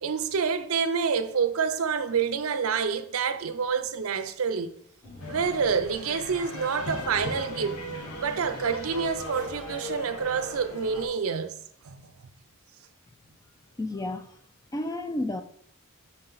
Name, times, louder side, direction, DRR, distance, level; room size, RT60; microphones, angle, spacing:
voice 1, 0.0-4.7 5.3-7.8 8.2-11.5 11.8-12.0, right 6 dB, 75° right, 0.5 m, -27 dB
sound 1, 5.0-6.0 6.3-6.4 6.7-10.1, equal, 40° left, 1.8 m, -46 dB
sound 2, 5.2-11.1, left 2 dB, 85° left, 1.0 m, -38 dB
voice 2, 13.8-14.3 14.7-15.4, left 1 dB, 15° left, 0.3 m, -31 dB
6.0 x 4.2 x 3.8 m
head